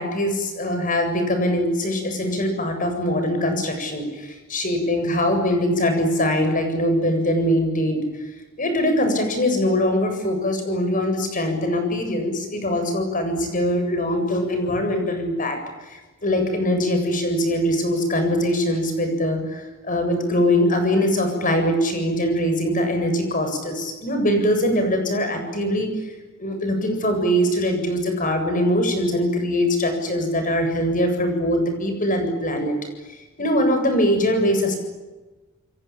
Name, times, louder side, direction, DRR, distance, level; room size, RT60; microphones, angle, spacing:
voice 1, 0.0-8.0 8.6-25.9 26.4-32.8 33.4-34.7, left 1 dB, 40° left, 6 dB, 7.8 m, -22 dB
29.0 x 23.0 x 8.9 m, 1.2 s
head